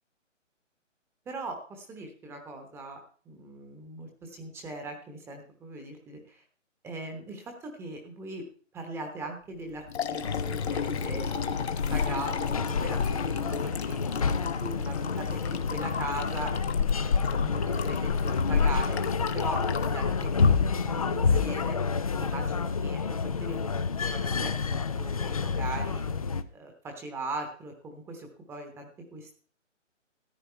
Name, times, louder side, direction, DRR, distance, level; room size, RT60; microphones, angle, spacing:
voice 1, 1.3-3.0 3.2-6.4 6.8-8.4 8.7-9.8 10.1-11.3 11.9-16.5 17.0-19.0 19.3-21.8 22.2-23.7 24.1-26.0 26.5-29.4, right 2 dB, 5° right, 3 dB, 1.1 m, -40 dB
Liquid, 9.6-21.5, left 7 dB, 55° left, 1.2 m, -37 dB
sound 1, 10.2-26.4, left 5 dB, 30° left, 0.5 m, -28 dB
14.0 x 9.8 x 4.4 m, 0.43 s
figure-of-eight pair, 145°, 38 cm